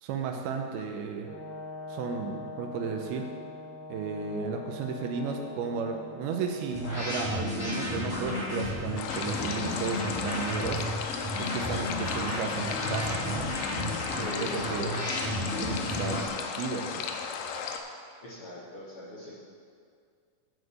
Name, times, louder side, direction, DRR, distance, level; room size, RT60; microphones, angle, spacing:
voice 1, 0.0-1.3 1.9-3.3 3.9-10.9 11.4-13.5 14.4-14.9 15.6-17.0, right 5 dB, 80° right, 3 dB, 2.4 m, -34 dB
Brass instrument, 1.2-7.4, left 2 dB, 55° right, 1.3 m, -43 dB
sound 1, 6.7-16.3, left 1 dB, 25° left, 2.0 m, -33 dB
sound 2, 9.0-17.8, left 6 dB, 85° left, 2.0 m, -35 dB
voice 2, 14.1-14.9 18.2-19.3, left 1 dB, 70° left, -8 dB, 1.3 m, -40 dB
10.0 x 4.7 x 7.7 m, 2.1 s
omnidirectional pair, 4.8 m